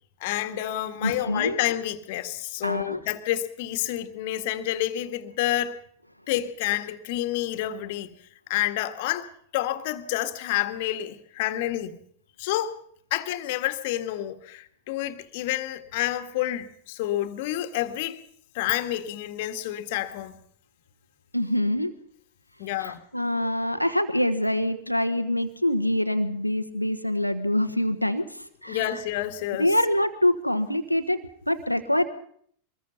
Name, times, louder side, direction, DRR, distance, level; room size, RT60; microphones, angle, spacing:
voice 1, 0.2-5.8 6.3-8.2 8.5-9.3 9.5-12.0 12.4-12.8 13.1-18.2 18.5-20.4 22.6-23.0 28.7-29.7, left 13 dB, 50° left, 1.8 m, -29 dB
voice 2, 1.0-1.6 2.6-3.0 21.3-21.9 22.8-29.0 29.6-32.1, left 1 dB, 90° left, 1.3 m, -25 dB
24.5 x 20.5 x 5.8 m
figure-of-eight pair, 90°, 0 cm